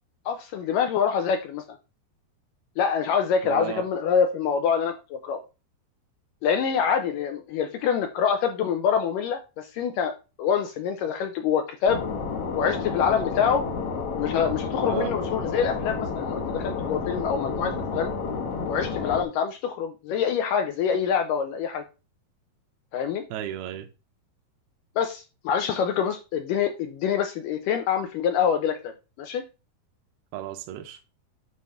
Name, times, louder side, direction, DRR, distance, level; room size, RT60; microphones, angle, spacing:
voice 1, 0.3-1.6 2.8-5.4 6.4-12.0 12.6-13.6 14.2-18.1 18.7-21.8 22.9-23.2 25.0-28.9 29.2-29.4, left 7 dB, 75° left, 2.1 m, -25 dB
voice 2, 3.4-3.8 14.9-15.1 23.3-23.9 30.3-31.0, right 11 dB, 80° right, 2.7 m, -33 dB
sound 1, 11.9-19.2, left 4 dB, 60° left, 1.6 m, -30 dB
9.5 x 3.4 x 5.6 m
omnidirectional pair, 4.6 m